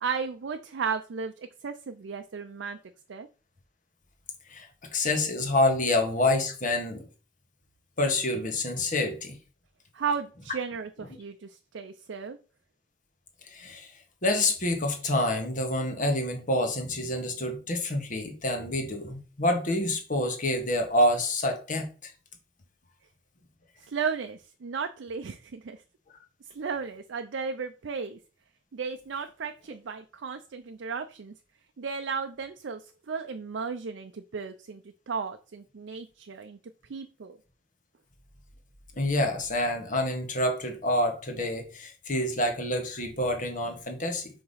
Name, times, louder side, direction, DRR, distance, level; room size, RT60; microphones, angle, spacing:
voice 1, 0.0-2.8 3.1-3.3 9.9-12.4 23.8-25.8 26.5-28.2 28.7-31.3 31.8-36.6 36.9-37.4, right 5 dB, 75° right, 0.5 m, -34 dB
voice 2, 4.9-7.0 8.0-9.3 13.5-13.9 14.2-22.1 39.0-44.3, left 1 dB, 45° left, 1.4 m, -27 dB
4.8 x 3.6 x 5.6 m
head